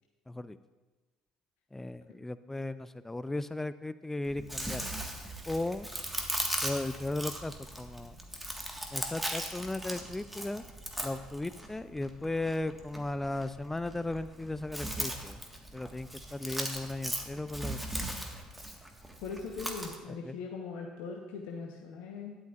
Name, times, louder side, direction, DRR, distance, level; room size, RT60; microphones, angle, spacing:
voice 1, 0.3-0.6 1.7-5.0 5.5-5.9 6.6-8.2 8.9-10.6 11.0-15.4 15.7-17.8 20.2-20.4, left 2 dB, 10° left, 14 dB, 0.4 m, -36 dB
Chewing mastication, 4.3-20.0, right 1 dB, 5° right, 1.6 m, -39 dB
voice 2, 19.2-22.4, left 5 dB, 65° left, 0 dB, 1.1 m, -40 dB
12.5 x 10.5 x 2.5 m, 1.2 s
hypercardioid pair, 55°, 3 cm